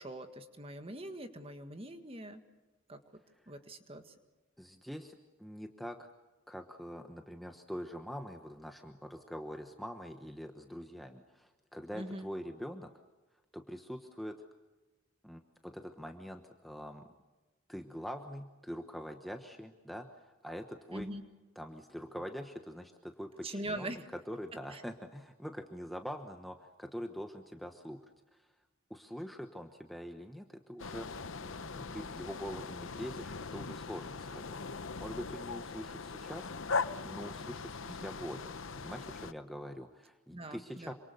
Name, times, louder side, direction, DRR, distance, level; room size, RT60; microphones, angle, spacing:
voice 1, 0.0-2.4 2.9-3.0 3.5-4.1 11.9-12.3 20.9-21.2 23.4-24.1 24.7-24.8 37.9-38.0 40.3-40.9, right 1 dB, 25° right, 7 dB, 1.7 m, -42 dB
voice 2, 4.6-6.1 6.5-12.9 13.5-14.4 15.2-17.1 17.7-21.1 21.6-23.9 24.3-28.0 28.3-28.4 28.9-31.1 31.4-36.5 37.0-38.5 38.8-40.9, equal, ahead, 4 dB, 1.1 m, -44 dB
sound 1, 30.8-39.3, left 4 dB, 60° left, 0.8 m, -40 dB
27.0 x 26.0 x 6.9 m, 1.2 s
head